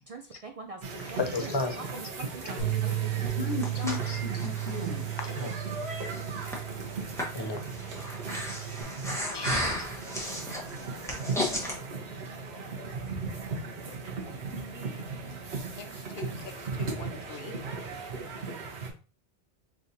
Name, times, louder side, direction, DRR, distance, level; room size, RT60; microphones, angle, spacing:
voice 1, 0.1-3.3 3.8-3.9 5.0-5.1 5.7-5.8, right 3 dB, 55° right, 0.4 m, -43 dB
sound 1, 0.8-18.9, right 4 dB, 90° right, 1.2 m, -37 dB
voice 2, 1.2-1.9 3.2-5.6 7.3-7.6 9.3-9.7 11.4-11.5, left 3 dB, 30° left, 0.5 m, -34 dB
Bass guitar, 2.6-8.8, right 13 dB, 60° left, 1.2 m, -34 dB
Breathing, 3.3-11.8, left 1 dB, 5° left, 0.9 m, -36 dB
voice 3, 15.8-17.5, left 6 dB, 85° left, 0.9 m, -44 dB
3.9 x 3.4 x 2.7 m
omnidirectional pair, 1.0 m